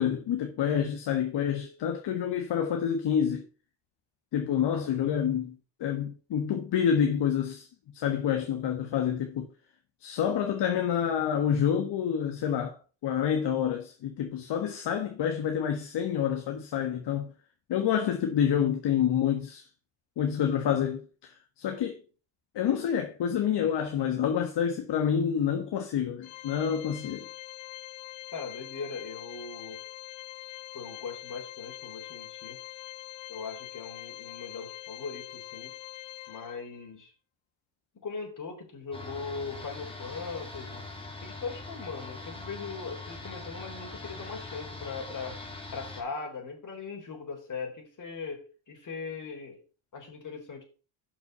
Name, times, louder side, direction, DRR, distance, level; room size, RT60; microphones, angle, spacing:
voice 1, 0.0-3.4 4.3-7.7 7.9-9.5 10.0-12.8 13.0-17.3 17.7-19.7 20.2-22.0 22.5-27.2, left 8 dB, 60° left, 1.5 m, -28 dB
Organ, 26.2-36.9, left 16 dB, 80° left, 0.9 m, -44 dB
voice 2, 28.3-29.8 30.7-32.6 33.3-35.7 36.3-37.1 38.0-40.8 41.2-45.4 45.7-49.6 49.9-50.6, left 5 dB, 40° left, 3.9 m, -39 dB
sound 1, 38.9-46.0, left 2 dB, 10° left, 2.8 m, -42 dB
6.4 x 5.9 x 6.7 m
cardioid pair, 100°, 48 cm